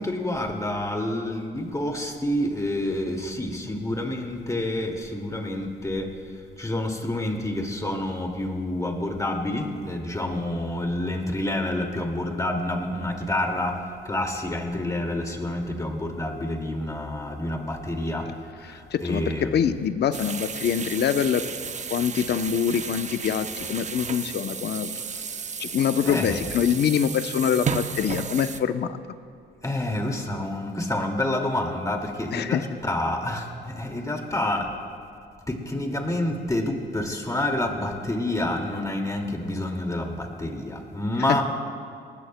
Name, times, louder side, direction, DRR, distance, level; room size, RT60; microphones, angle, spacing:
voice 1, 0.0-6.1 6.6-13.8 14.1-18.3 18.6-19.7 26.1-26.4 29.6-34.7 35.5-41.4, left 1 dB, 15° left, 2 dB, 2.2 m, -28 dB
voice 2, 18.7-21.4 21.9-24.9 25.6-29.0 32.3-32.7, left 8 dB, 55° left, 10 dB, 0.8 m, -25 dB
sound 1, 20.1-28.6, right 6 dB, 35° right, 0.8 m, -33 dB
23.5 x 19.0 x 2.2 m, 2.4 s
cardioid pair, 90°, 20 cm